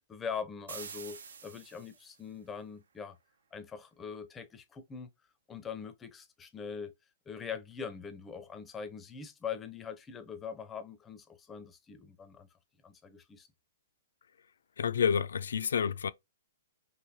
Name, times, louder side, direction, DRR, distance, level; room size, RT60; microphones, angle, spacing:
voice 1, 0.1-3.2 3.5-5.1 5.5-6.9 7.3-12.5 12.8-13.5, left 6 dB, 15° left, 0.5 m, -42 dB
sound 1, 0.7-2.2, right 6 dB, 85° right, 0.6 m, -46 dB
voice 2, 14.8-16.1, left 7 dB, 85° left, 0.3 m, -29 dB
3.1 x 2.7 x 2.6 m
hypercardioid pair, 155°, 0 cm